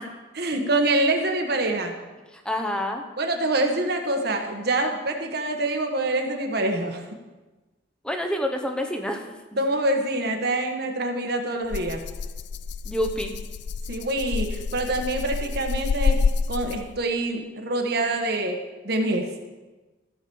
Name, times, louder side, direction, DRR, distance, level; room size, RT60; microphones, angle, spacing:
voice 1, 0.3-2.0 3.2-7.0 9.6-12.0 13.9-16.2 16.5-18.6 18.8-19.3, right 2 dB, 55° right, 4 dB, 1.3 m, -25 dB
voice 2, 2.3-3.0 8.0-9.4 12.8-13.3, left 1 dB, 5° left, 3 dB, 1.0 m, -27 dB
Rattle (instrument), 11.7-17.0, left 5 dB, 60° left, 0.4 m, -28 dB
14.5 x 5.1 x 7.0 m, 1.2 s
head